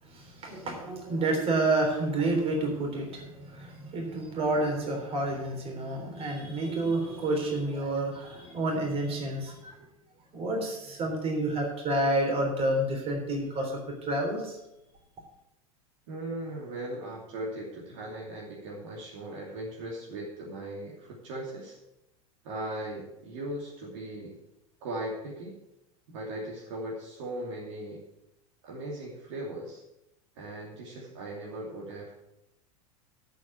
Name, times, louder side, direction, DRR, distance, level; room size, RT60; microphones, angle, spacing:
voice 1, 0.0-9.9 10.3-14.6, right 2 dB, 35° right, 2 dB, 3.6 m, -29 dB
voice 2, 16.1-21.8 22.4-24.3 24.8-25.5 26.1-28.0 28.6-29.8 30.4-32.2, right 1 dB, 55° right, -3 dB, 2.9 m, -38 dB
8.4 x 7.9 x 8.3 m, 0.86 s
figure-of-eight pair, 80°, 18 cm